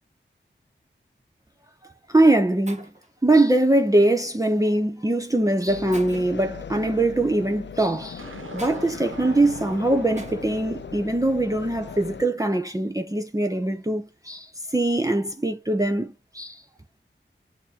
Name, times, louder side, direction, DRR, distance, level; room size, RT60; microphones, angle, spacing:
Shatter, 1.4-1.6 2.3-2.4 2.7-3.1 4.4-4.6 5.2-5.3 5.9-6.4 8.6-8.8 10.2-10.5, right 2 dB, 35° right, 1.5 m, -44 dB
voice 1, 2.1-2.9 3.2-8.3 8.5-16.6, right 2 dB, 15° right, 0.7 m, -22 dB
sound 1, 5.7-12.2, left 7 dB, 60° left, 0.4 m, -39 dB
sound 2, 8.2-12.6, right 3 dB, 85° right, 1.2 m, -42 dB
7.1 x 2.8 x 5.1 m
wide cardioid pair, 40°, 20 cm